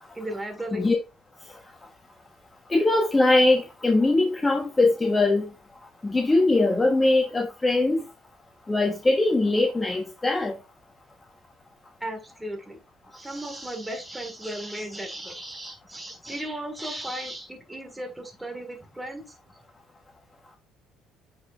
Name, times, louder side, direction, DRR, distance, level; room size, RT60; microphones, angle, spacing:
voice 1, 0.1-0.9 12.0-12.8 13.1-19.4, right 1 dB, 10° right, 1.6 m, -35 dB
voice 2, 2.7-5.5 6.0-8.0 8.7-10.5, left 2 dB, 20° left, 1.1 m, -21 dB
8.4 x 4.8 x 2.4 m
supercardioid pair, 85°, 0 cm